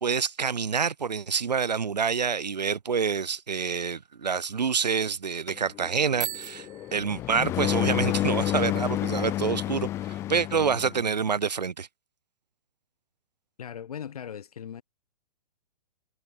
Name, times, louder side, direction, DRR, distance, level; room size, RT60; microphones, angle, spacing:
voice 1, 0.0-6.7 6.9-11.9, right 6 dB, 80° right, 0.7 m, -27 dB
sound 1, 5.5-11.1, left 14 dB, 15° left, 0.3 m, -29 dB
Bicycle bell, 6.1-7.9, right 11 dB, 55° right, 1.8 m, -38 dB
voice 2, 13.6-14.8, left 8 dB, 60° left, 3.1 m, -38 dB
figure-of-eight pair, 115°, 21 cm